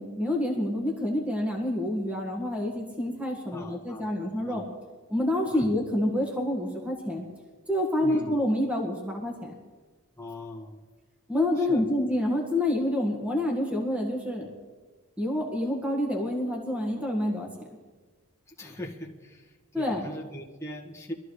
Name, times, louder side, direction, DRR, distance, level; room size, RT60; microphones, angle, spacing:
voice 1, 0.0-4.6 5.1-7.2 7.7-9.5 11.3-14.5 15.2-17.5 18.6-18.7 19.7-20.1, left 1 dB, 5° right, 0 dB, 1.8 m, -28 dB
voice 2, 3.5-4.1 4.4-4.6 5.5-5.7 8.0-8.3 10.2-10.8 11.6-11.9 18.6-21.1, left 1 dB, 15° left, -1 dB, 1.5 m, -41 dB
23.5 x 14.0 x 3.3 m, 1.3 s
head